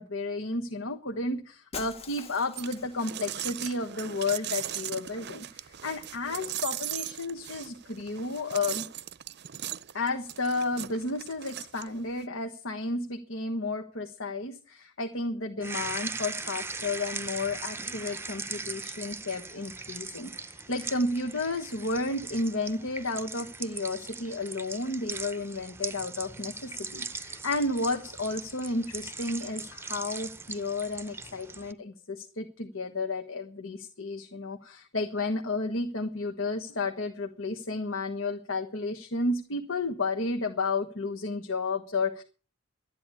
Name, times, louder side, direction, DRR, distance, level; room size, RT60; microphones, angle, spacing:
voice 1, 0.0-8.8 9.9-42.2, left 3 dB, 75° left, 5 dB, 1.4 m, -32 dB
Shatter, 1.7-3.1, left 5 dB, 30° left, 1.4 m, -43 dB
sound 1, 2.6-12.3, right 12 dB, 55° right, 0.6 m, -38 dB
sound 2, 15.6-31.7, right 4 dB, 10° right, 0.7 m, -39 dB
12.5 x 10.0 x 8.5 m, 0.39 s
head